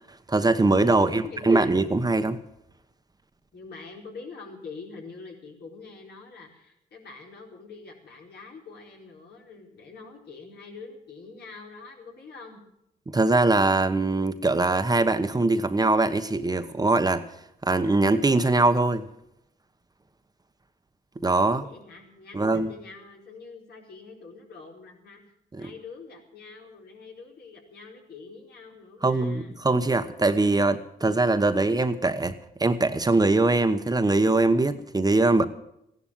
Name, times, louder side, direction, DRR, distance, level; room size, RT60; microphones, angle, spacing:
voice 1, 0.3-2.4 13.1-17.2 17.6-19.0 21.2-21.6 22.3-22.7 25.5-25.7 29.0-32.3 32.6-35.5, right 2 dB, 20° right, 1.1 m, -22 dB
voice 2, 0.9-1.7 3.5-12.6 21.6-25.2 25.5-29.6, left 4 dB, 70° left, 4.5 m, -45 dB
15.5 x 11.5 x 7.4 m
cardioid pair, 75°, 17 cm